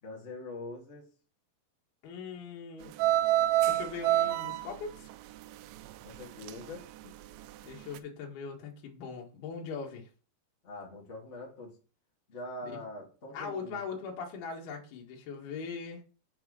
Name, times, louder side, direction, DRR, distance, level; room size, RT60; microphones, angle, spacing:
voice 1, 0.0-1.1 6.0-7.1 10.6-11.8 12.3-13.8, left 2 dB, 25° left, 1.4 m, -43 dB
voice 2, 2.0-2.9 3.7-5.1 7.6-10.1 12.6-12.8 13.3-16.0, left 5 dB, 65° left, 3.3 m, -40 dB
sound 1, 2.9-6.8 7.1-7.6 7.9-8.0, right 14 dB, 85° right, 2.6 m, -28 dB
7.3 x 4.6 x 6.2 m
omnidirectional pair, 5.3 m